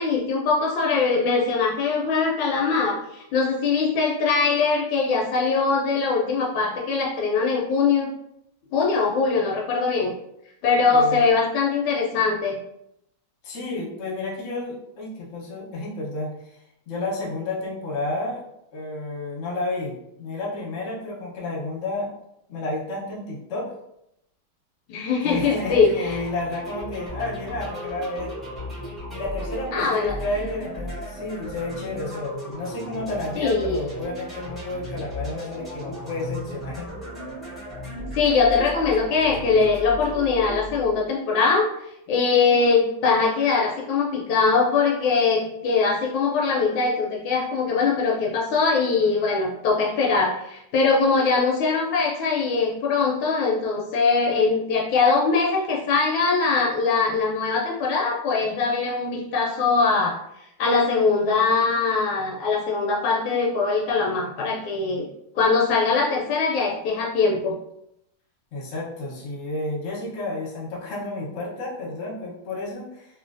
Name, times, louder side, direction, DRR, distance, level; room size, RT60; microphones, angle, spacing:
voice 1, 0.0-8.1 8.7-10.1 10.6-12.6 24.9-26.1 29.7-30.1 33.4-33.8 38.1-41.7 42.1-60.2 60.6-65.1 65.3-67.6, left 4 dB, 75° left, -2 dB, 1.3 m, -22 dB
voice 2, 10.9-11.3 13.4-16.3 16.9-18.4 18.7-22.1 22.5-23.7 25.2-28.3 29.1-36.9 68.5-73.1, left 2 dB, 50° left, -4 dB, 0.9 m, -31 dB
sound 1, 25.2-41.2, equal, ahead, 0.6 m, -36 dB
3.1 x 2.6 x 2.5 m, 0.80 s
omnidirectional pair, 2.3 m